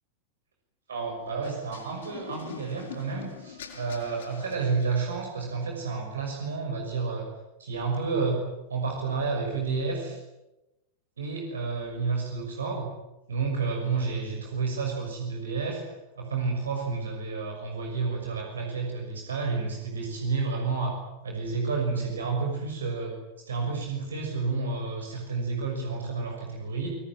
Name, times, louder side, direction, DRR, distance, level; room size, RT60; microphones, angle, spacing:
voice 1, 0.9-7.3 7.6-8.4 8.7-10.2 11.2-12.9 13.3-21.0 21.2-27.0, right 4 dB, 70° right, 1 dB, 6.2 m, -30 dB
sound 1, 1.4-5.4, left 8 dB, 60° left, 6.7 m, -45 dB
28.0 x 20.5 x 9.2 m, 0.98 s
figure-of-eight pair, 90°, 0 cm